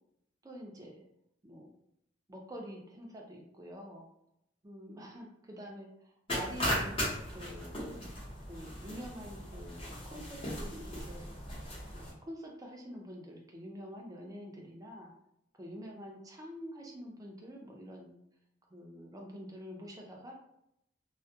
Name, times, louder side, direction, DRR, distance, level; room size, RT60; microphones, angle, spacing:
voice 1, 0.4-1.1 1.4-1.7 2.3-4.1 4.6-5.9 6.3-7.8 8.5-11.4 12.3-15.1 15.6-18.2 18.7-20.3, equal, 20° right, 0 dB, 0.4 m, -46 dB
sound 1, 6.3-12.1, equal, 30° left, 0.8 m, -37 dB
2.2 x 2.1 x 2.6 m, 0.77 s
head